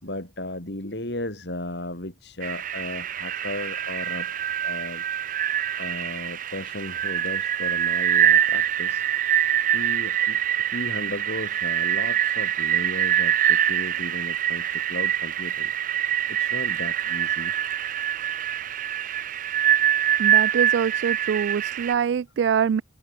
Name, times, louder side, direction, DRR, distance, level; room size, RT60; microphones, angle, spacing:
voice 1, 0.0-4.3 4.6-5.0 5.8-9.1 9.6-15.7 16.0-17.5, left 1 dB, 65° left, 4.5 m, -35 dB
sound 1, 2.4-21.9, right 10 dB, 45° right, 0.7 m, -24 dB
voice 2, 20.2-22.8, right 7 dB, 70° right, 0.3 m, -24 dB
head